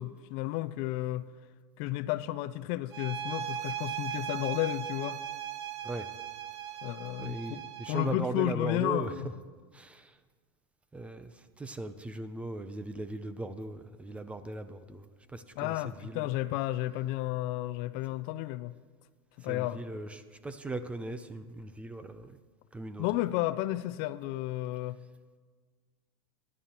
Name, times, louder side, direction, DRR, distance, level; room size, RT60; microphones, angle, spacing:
voice 1, 0.0-1.3 1.8-5.2 6.8-9.4 15.6-18.7 19.4-19.8 23.0-25.0, left 16 dB, 50° left, 0.4 m, -32 dB
sound 1, 2.9-8.2, right 11 dB, 85° right, 0.8 m, -38 dB
voice 2, 7.2-9.1 9.8-9.9 10.9-11.3 11.6-15.0 15.3-15.7 19.5-20.1 20.4-22.3 22.7-23.0, right 2 dB, 10° right, 0.5 m, -38 dB
18.0 x 11.0 x 2.9 m
supercardioid pair, 140°, 13 cm